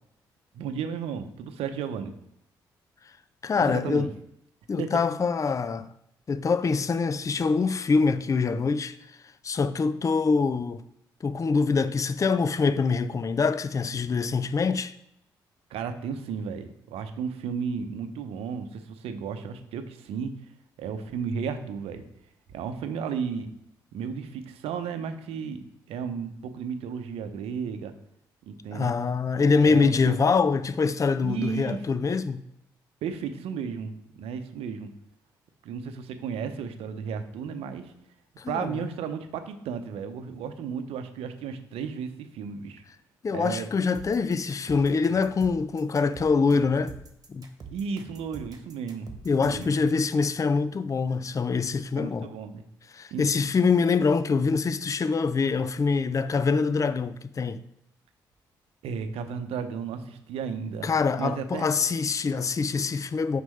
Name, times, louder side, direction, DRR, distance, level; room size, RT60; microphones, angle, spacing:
voice 1, 0.5-2.1 3.6-4.1 4.8-4.9 15.7-20.3 20.8-22.0 22.5-23.5 23.9-27.9 28.4-28.9 29.6-30.2 31.2-31.8 33.0-34.9 35.6-37.9 38.5-42.8 43.3-43.7 47.7-49.1 49.4-49.7 52.0-52.6 53.1-53.2 58.8-60.9 61.2-61.7, right 6 dB, 70° right, 0.7 m, -34 dB
voice 2, 3.4-4.1 4.7-5.9 6.3-9.0 9.4-10.8 11.2-14.9 28.7-32.4 38.4-38.8 43.2-46.9 47.3-47.5 49.2-52.3 52.9-57.6 60.8-63.4, left 4 dB, 30° left, 0.4 m, -24 dB
sound 1, 43.9-49.8, right 4 dB, 35° right, 1.5 m, -44 dB
6.1 x 5.3 x 3.2 m
hypercardioid pair, 45°, 10 cm